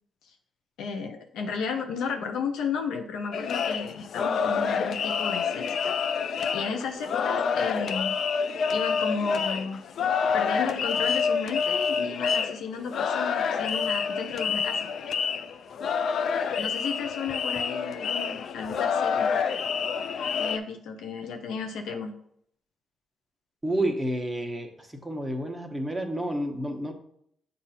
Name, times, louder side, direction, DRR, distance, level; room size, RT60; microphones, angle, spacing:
voice 1, 0.8-6.0 6.5-8.1 8.7-9.8 10.3-14.9 16.6-19.3 20.4-22.1, left 5 dB, 85° left, 5 dB, 0.8 m, -33 dB
sound 1, 3.3-20.6, left 6 dB, 65° left, 0.4 m, -28 dB
voice 2, 23.6-24.7 25.0-26.9, right 1 dB, 10° right, 3 dB, 1.1 m, -29 dB
7.5 x 2.7 x 5.7 m, 0.69 s
cardioid pair, 85°, 0 cm